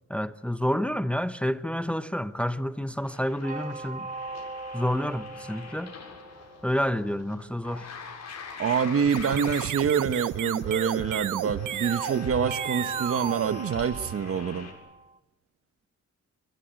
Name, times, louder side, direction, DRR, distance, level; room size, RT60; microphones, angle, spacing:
voice 1, 0.1-4.1 4.7-5.9 6.6-7.9, equal, 5° left, 0.9 m, -29 dB
sound 1, 3.0-14.7, left 5 dB, 60° left, 7.2 m, -45 dB
sound 2, 3.4-7.0 10.6-15.2, right 3 dB, 25° right, 1.5 m, -40 dB
voice 2, 8.6-14.7, right 7 dB, 50° right, 1.2 m, -26 dB
sound 3, 9.0-14.5, right 12 dB, 80° right, 1.0 m, -33 dB
23.5 x 23.5 x 9.2 m
cardioid pair, 140°, 31 cm